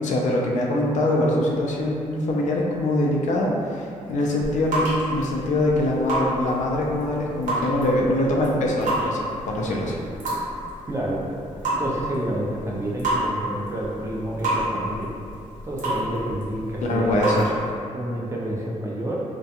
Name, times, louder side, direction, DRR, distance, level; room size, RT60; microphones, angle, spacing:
voice 1, 0.0-10.0 16.8-17.4, left 1 dB, 70° left, -2 dB, 0.4 m, -23 dB
sound 1, 4.2-17.7, right 1 dB, 75° right, 0.8 m, -30 dB
voice 2, 10.9-11.2 11.8-15.1 15.6-17.2 17.9-19.2, right 1 dB, 20° right, -4 dB, 0.4 m, -29 dB
2.3 x 2.2 x 2.7 m, 2.5 s
wide cardioid pair, 140°, 13 cm